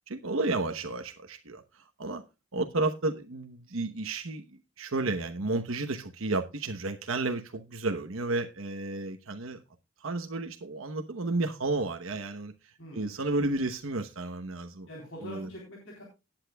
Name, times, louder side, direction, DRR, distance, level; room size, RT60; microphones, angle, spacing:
voice 1, 0.1-2.2 2.5-4.5 4.8-9.6 10.0-14.9 15.2-15.5, right 2 dB, 75° right, 1.0 m, -32 dB
voice 2, 12.8-13.1 14.9-16.0, left 1 dB, 60° left, 3.8 m, -44 dB
18.0 x 9.0 x 2.3 m
head